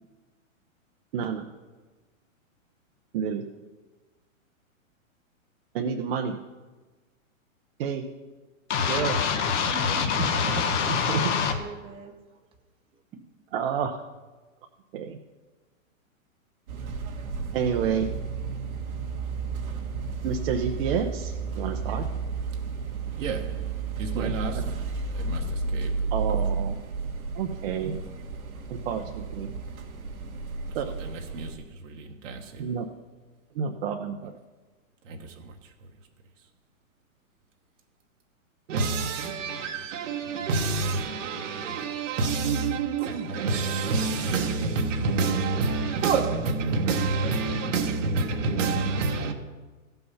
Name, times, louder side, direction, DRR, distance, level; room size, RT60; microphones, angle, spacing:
voice 1, 1.1-1.5 3.1-3.4 5.7-6.4 7.8-8.1 8.9-9.2 10.9-11.2 13.5-14.0 14.9-15.2 17.5-18.1 20.2-22.1 24.2-24.6 26.1-26.8 27.3-28.0 28.7-29.5 30.7-30.9 32.6-32.9 33.5-34.3, right 7 dB, 45° right, 0.8 m, -29 dB
sound 1, 8.7-11.6, left 6 dB, 55° left, 1.3 m, -25 dB
voice 2, 9.7-12.1, right 5 dB, 15° right, 0.7 m, -38 dB
sound 2, 16.7-31.6, right 4 dB, 85° right, 1.9 m, -32 dB
voice 3, 23.2-23.6 24.0-24.6 25.1-25.9 31.1-31.6 31.8-32.6 35.1-35.2 35.4-35.5 38.7-49.3, right 4 dB, 65° right, 1.3 m, -28 dB
15.0 x 5.6 x 5.6 m
hypercardioid pair, 145°, 41 cm